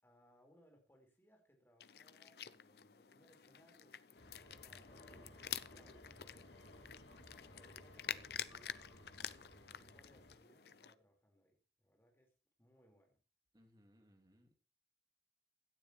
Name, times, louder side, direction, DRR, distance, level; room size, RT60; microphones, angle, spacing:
voice 1, 0.0-6.5 7.1-8.8 9.1-12.3 12.6-13.2, equal, 15° left, 2 dB, 4.2 m, -69 dB
sound 1, 1.8-10.9, left 9 dB, 60° left, 0.6 m, -49 dB
sound 2, 4.1-10.4, left 1 dB, 80° left, 2.3 m, -59 dB
voice 2, 13.5-14.5, equal, 25° right, 3 dB, 2.7 m, -68 dB
17.0 x 12.0 x 3.1 m, 0.36 s
head